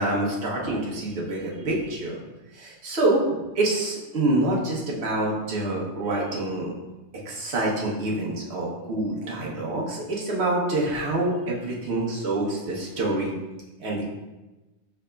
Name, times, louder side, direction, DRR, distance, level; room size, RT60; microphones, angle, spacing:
voice 1, 0.0-2.2 2.5-6.7 7.2-13.3 13.8-14.1, right 2 dB, 60° right, -4 dB, 1.1 m, -26 dB
4.9 x 4.0 x 2.2 m, 1.1 s
omnidirectional pair, 1.3 m